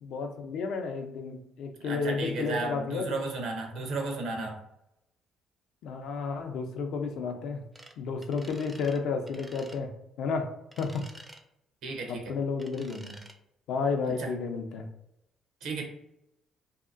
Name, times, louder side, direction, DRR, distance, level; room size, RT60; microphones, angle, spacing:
voice 1, 0.0-3.2 5.8-7.6 8.0-9.9 10.2-10.5 10.8-11.0 12.1-13.2 13.7-14.9, left 4 dB, 75° left, 4 dB, 0.5 m, -32 dB
voice 2, 1.8-4.6 11.8-12.2 14.2-14.3 15.6-15.8, right 3 dB, 75° right, 2 dB, 0.7 m, -34 dB
sound 1, 7.7-7.9 8.2-9.0 9.3-9.8 10.7-11.4 12.6-13.4, right 2 dB, 15° right, 0.4 m, -50 dB
2.8 x 2.4 x 2.4 m, 0.83 s
cardioid pair, 95°, 0 cm